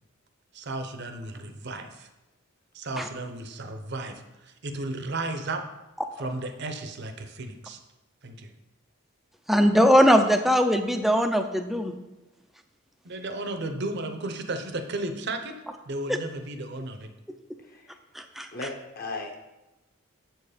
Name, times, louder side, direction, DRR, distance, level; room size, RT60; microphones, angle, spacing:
voice 1, 0.5-2.1 2.7-5.6 6.2-7.8 8.2-8.5 13.0-15.5 15.9-17.1, right 2 dB, 55° right, 7 dB, 0.7 m, -34 dB
voice 2, 9.5-11.9 18.4-18.5, equal, ahead, 6 dB, 0.4 m, -20 dB
voice 3, 17.7-18.0 18.5-19.4, left 3 dB, 45° left, 3 dB, 1.0 m, -36 dB
7.8 x 4.6 x 5.0 m, 1.0 s
head